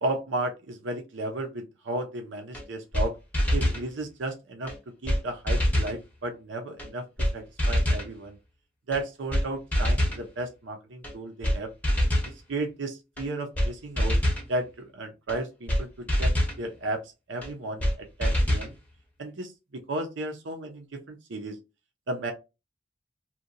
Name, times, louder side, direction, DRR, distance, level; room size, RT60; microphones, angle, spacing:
voice 1, 0.0-3.2 3.5-4.7 5.0-7.0 7.3-8.4 8.9-11.7 12.5-14.2 14.5-16.3 16.6-17.0 17.3-18.7 19.2-19.5 19.9-21.6 22.1-22.3, right 2 dB, 75° right, 4 dB, 0.6 m, -33 dB
sound 1, 2.5-2.6 2.9-3.1 3.3-3.8 4.7-4.8 5.1-5.2 5.5-6.0 6.8-6.9 7.2-7.3 7.6-8.1 8.9-9.0 9.3-9.5 9.7-10.2 11.0-11.1 11.4-11.6 11.8-12.3 13.2-13.3 13.6-13.7 14.0-14.5 15.3-15.4 15.7-15.8 16.1-16.6 17.4-17.5 17.8-17.9 18.2-18.7, equal, 10° left, 0.7 m, -24 dB
2.8 x 2.3 x 2.5 m, 0.26 s
head